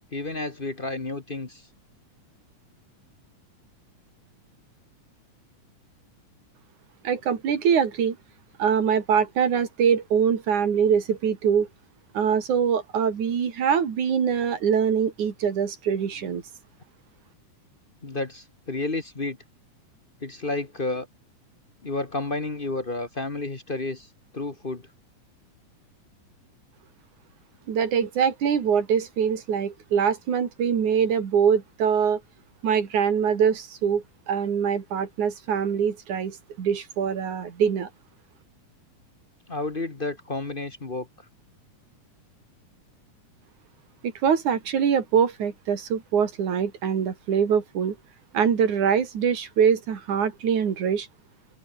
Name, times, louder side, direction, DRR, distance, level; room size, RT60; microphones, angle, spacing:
voice 1, 0.1-1.7 16.2-16.3 18.0-19.4 20.2-21.1 21.8-24.9 39.5-41.1, left 2 dB, 35° left, 0.9 m, -31 dB
voice 2, 7.0-8.2 8.6-11.7 12.1-16.4 27.7-32.2 32.6-37.9 44.0-48.0 48.3-51.1, right 7 dB, 70° right, 4.0 m, -23 dB
open air
omnidirectional pair, 3.7 m